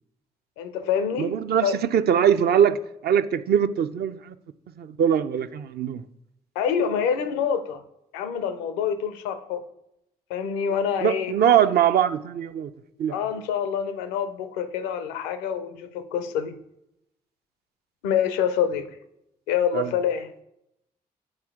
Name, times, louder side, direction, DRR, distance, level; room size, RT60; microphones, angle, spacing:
voice 1, 0.6-1.8 6.6-7.8 8.1-9.6 10.3-11.3 13.1-16.6 18.0-19.0 19.5-20.3, left 8 dB, 80° left, 0.6 m, -26 dB
voice 2, 1.2-4.3 4.8-6.0 11.0-12.7 13.0-13.1 19.7-19.9, right 9 dB, 55° right, 0.5 m, -22 dB
8.8 x 4.3 x 3.6 m
hypercardioid pair, 40°, 20 cm